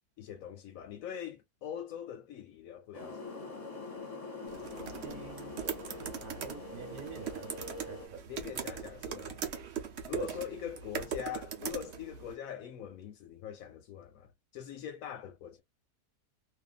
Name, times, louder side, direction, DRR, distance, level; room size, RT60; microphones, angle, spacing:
voice 1, 0.2-3.3 8.3-9.4 10.1-15.6, left 9 dB, 70° left, 0.9 m, -43 dB
sound 1, 2.9-8.1, left 3 dB, 25° left, 1.0 m, -44 dB
sound 2, 4.5-12.4, right 7 dB, 55° right, 0.8 m, -40 dB
voice 2, 5.0-5.6 6.0-8.8 10.1-10.3, right 7 dB, 70° right, 1.3 m, -46 dB
2.5 x 2.5 x 2.3 m
omnidirectional pair, 1.6 m